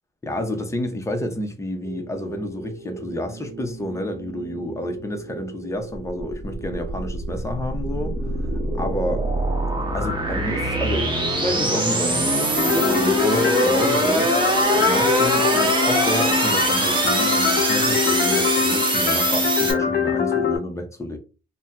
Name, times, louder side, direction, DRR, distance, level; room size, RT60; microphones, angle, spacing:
voice 1, 0.2-8.5 8.8-9.2 9.9-21.2, left 1 dB, 15° left, 0.7 m, -30 dB
sound 1, 1.8-14.9, right 5 dB, 45° right, 0.9 m, -39 dB
sound 2, 5.9-19.7, right 1 dB, 25° right, 0.9 m, -23 dB
sound 3, 12.6-20.6, left 6 dB, 55° left, 0.7 m, -23 dB
2.6 x 2.2 x 3.4 m
cardioid pair, 90°, 20 cm